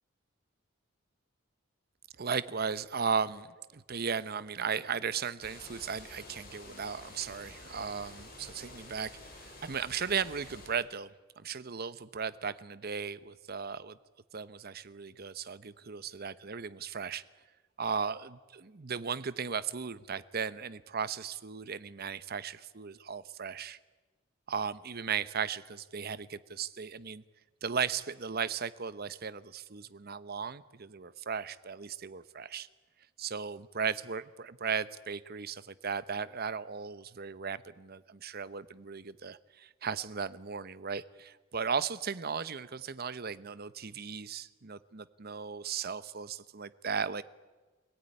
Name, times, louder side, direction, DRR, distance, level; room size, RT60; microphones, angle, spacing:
voice 1, 2.2-11.1 11.4-14.0 14.3-17.2 17.8-23.8 24.5-27.2 27.6-32.7 33.2-47.2, right 6 dB, 50° right, 15 dB, 0.9 m, -36 dB
sound 1, 5.4-10.7, left 2 dB, 50° left, 5.7 m, -50 dB
25.5 x 17.5 x 9.9 m, 1.3 s
head